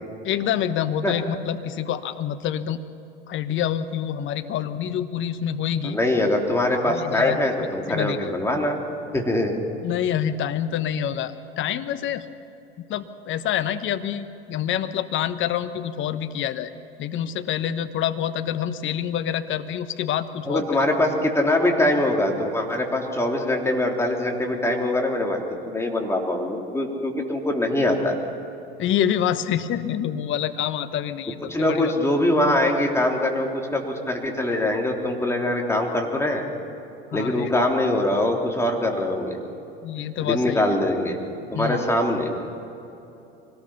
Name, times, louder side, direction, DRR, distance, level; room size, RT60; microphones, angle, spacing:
voice 1, 0.2-2.8 3.3-6.0 6.8-7.4 7.9-8.3 9.8-12.2 12.9-16.7 17.0-20.7 28.8-31.9 37.1-37.5 39.8-40.6 41.5-41.8, left 10 dB, 40° left, 11 dB, 1.1 m, -27 dB
voice 2, 5.8-8.8 9.1-9.6 20.4-28.2 31.5-36.4 37.1-39.4 40.2-41.2 41.5-42.3, left 1 dB, 10° left, 0 dB, 3.3 m, -23 dB
24.5 x 18.5 x 5.8 m, 2.9 s
hypercardioid pair, 80°, 30 cm